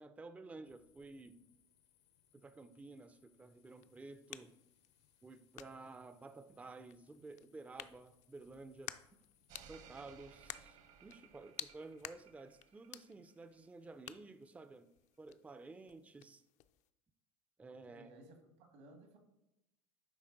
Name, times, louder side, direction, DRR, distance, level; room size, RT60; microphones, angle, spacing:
voice 1, 0.0-1.4 2.3-4.6 5.2-9.0 9.6-14.9 15.2-16.4 17.6-18.1, right 3 dB, 10° right, 0.4 m, -53 dB
sound 1, 0.6-9.5, left 8 dB, 80° left, 1.0 m, -73 dB
sound 2, 3.7-16.9, left 13 dB, 55° left, 0.4 m, -54 dB
sound 3, 9.5-13.7 14.0-14.1, right 7 dB, 50° right, 0.9 m, -60 dB
voice 2, 17.8-19.2, right 2 dB, 75° right, 1.7 m, -58 dB
9.9 x 3.4 x 3.8 m
supercardioid pair, 95°, 15 cm